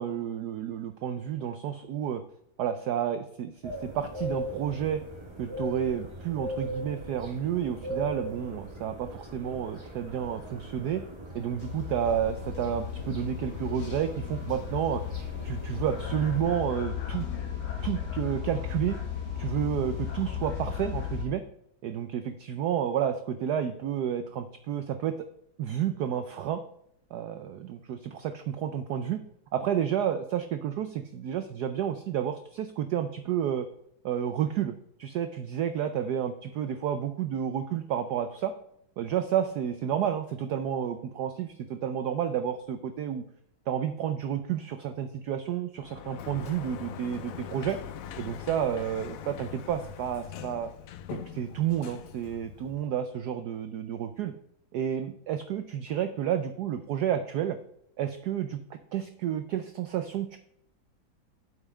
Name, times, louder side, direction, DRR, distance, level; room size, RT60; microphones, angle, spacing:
voice 1, 0.0-2.2 2.6-5.0 5.4-11.0 11.3-15.0 15.4-17.3 17.8-19.0 19.4-21.4 21.8-25.1 25.6-26.6 27.1-29.2 29.5-33.7 34.0-38.5 39.0-43.2 43.7-47.8 48.2-50.7 51.1-54.3 54.7-57.6 58.0-60.4, right 9 dB, 70° right, 9 dB, 1.0 m, -30 dB
sound 1, 3.6-16.4, right 1 dB, 15° right, 1.9 m, -40 dB
sound 2, 11.6-21.2, left 8 dB, 60° left, 1.9 m, -35 dB
Sliding door, 45.8-52.9, left 9 dB, 80° left, 0.7 m, -42 dB
8.0 x 5.5 x 6.1 m, 0.74 s
omnidirectional pair, 2.1 m